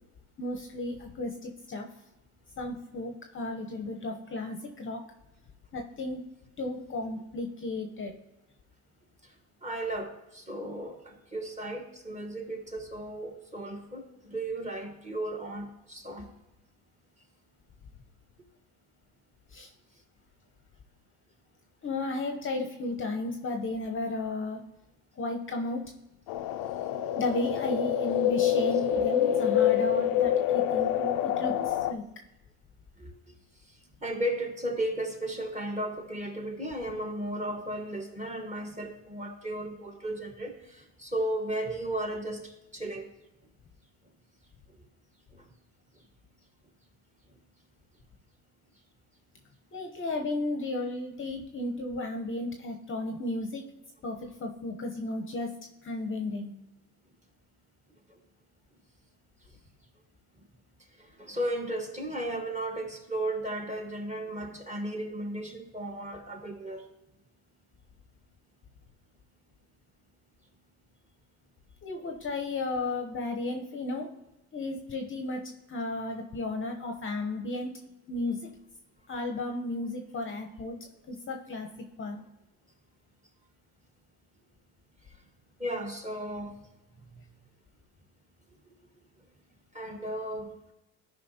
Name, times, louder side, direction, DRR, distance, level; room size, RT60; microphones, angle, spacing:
voice 1, 0.4-1.9 2.6-5.0 5.7-6.2 6.6-8.1 19.5-19.7 21.8-24.6 25.2-25.8 27.2-32.0 49.7-53.6 54.0-55.5 55.8-56.5 71.8-74.1 74.5-75.4 75.7-77.7 78.1-78.4 79.1-80.8 81.1-81.7 82.0-82.2, left 2 dB, 30° left, 3 dB, 0.8 m, -34 dB
voice 2, 9.6-16.3 28.7-29.0 33.0-33.1 34.0-43.1 45.3-45.4 61.0-66.9 85.6-86.6 87.1-87.2 89.7-90.7, right 1 dB, 15° right, 2 dB, 1.4 m, -35 dB
sound 1, 26.3-31.9, left 10 dB, 55° left, 0.5 m, -26 dB
12.5 x 5.1 x 2.8 m, 0.97 s
supercardioid pair, 95°, 43 cm